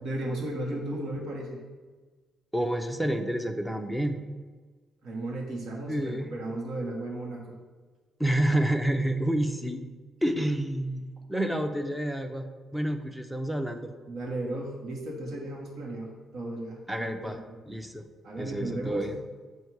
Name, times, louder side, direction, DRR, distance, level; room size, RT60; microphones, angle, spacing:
voice 1, 0.0-1.6 5.0-7.6 14.1-17.4 18.2-19.1, right 1 dB, 70° right, -2 dB, 1.5 m, -35 dB
voice 2, 2.5-4.2 5.9-6.3 8.2-9.8 10.2-11.0 11.3-12.4 12.7-13.9 16.9-17.4 17.7-18.0 18.4-19.2, right 1 dB, 5° right, 6 dB, 0.6 m, -29 dB
7.5 x 2.7 x 4.6 m, 1.4 s
cardioid pair, 90°, 0 cm